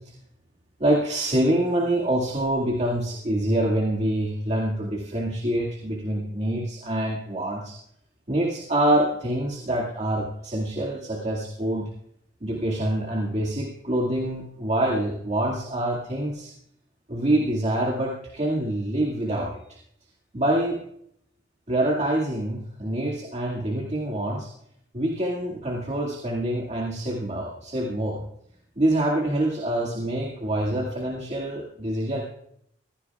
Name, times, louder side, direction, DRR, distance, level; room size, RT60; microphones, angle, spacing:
voice 1, 0.8-7.8 8.3-11.9 12.4-16.5 17.1-19.6 20.3-20.8 21.7-24.5 24.9-28.2 28.8-32.2, right 1 dB, 35° right, -2 dB, 2.0 m, -26 dB
21.0 x 16.5 x 2.4 m, 0.72 s
head